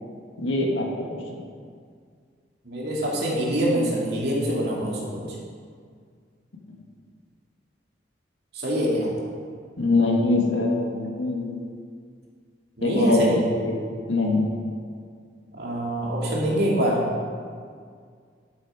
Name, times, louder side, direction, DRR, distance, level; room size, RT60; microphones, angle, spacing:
voice 1, 0.4-0.9 1.3-1.4 9.8-11.6 12.8-13.2 13.5-13.8 14.1-14.4, left 2 dB, 85° left, 0 dB, 1.8 m, -23 dB
voice 2, 2.7-5.2 8.5-9.1 12.8-13.4 15.6-17.0, right 1 dB, 60° right, -4 dB, 2.5 m, -24 dB
11.5 x 8.1 x 4.9 m, 2.1 s
head